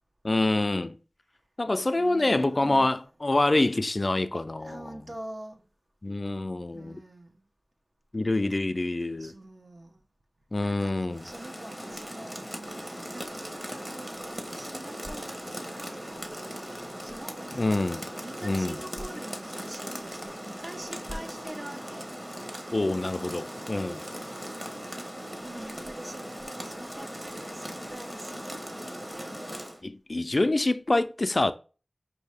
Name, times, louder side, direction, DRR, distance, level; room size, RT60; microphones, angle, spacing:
voice 1, 0.2-0.9 1.6-5.1 6.0-7.0 8.1-9.3 10.5-11.3 17.5-18.1 18.4-18.8 22.7-24.1 29.8-31.5, left 2 dB, 50° left, 0.4 m, -26 dB
voice 2, 2.0-3.0 4.6-5.6 6.7-7.4 9.2-10.0 10.6-17.8 18.2-22.1 25.4-28.7 29.1-29.4, right 1 dB, 50° right, 0.9 m, -45 dB
Rain, 11.1-29.8, equal, 20° right, 1.1 m, -39 dB
5.4 x 2.7 x 3.4 m
wide cardioid pair, 55°, 0 cm